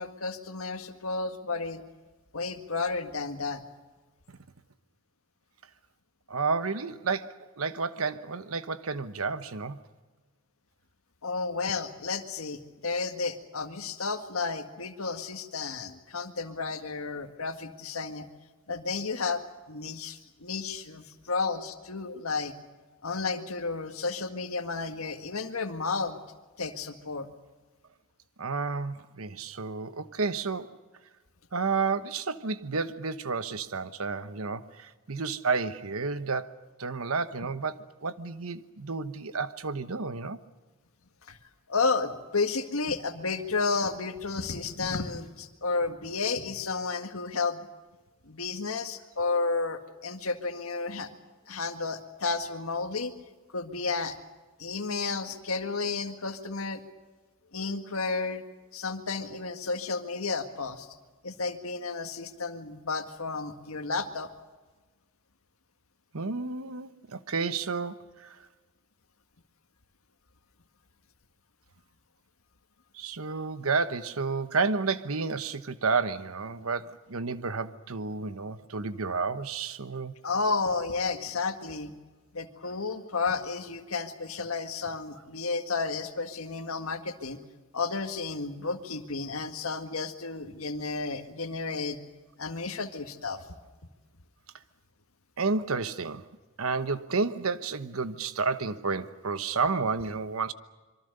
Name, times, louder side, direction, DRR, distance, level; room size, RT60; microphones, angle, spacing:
voice 1, 0.0-1.8 2.3-3.6 11.2-18.3 18.7-22.5 23.0-26.2 26.6-27.3 41.3-41.4 41.7-47.6 48.3-51.1 51.5-53.1 53.5-54.2 54.6-56.8 57.5-58.4 58.7-60.9 61.2-64.3 80.2-81.9 82.3-87.4 87.7-92.0 92.4-93.4, left 4 dB, 85° left, 1.8 m, -32 dB
voice 2, 6.3-9.8 28.4-30.8 31.5-40.4 66.1-68.4 72.9-80.1 95.4-96.3 96.6-100.5, right 4 dB, 85° right, 1.1 m, -31 dB
26.0 x 23.5 x 6.7 m
head